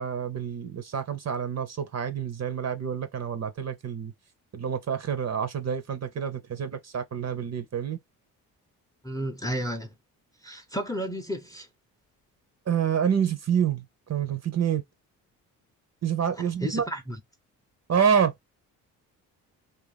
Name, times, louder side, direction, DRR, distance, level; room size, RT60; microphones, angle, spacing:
voice 1, 0.0-4.1 4.5-8.0 12.7-14.8 16.0-16.8 17.9-18.3, right 8 dB, 40° right, 0.7 m, -27 dB
voice 2, 9.0-9.9 10.4-11.7 16.3-17.2, equal, 10° left, 0.7 m, -32 dB
2.7 x 2.5 x 4.0 m
supercardioid pair, 55°, 42 cm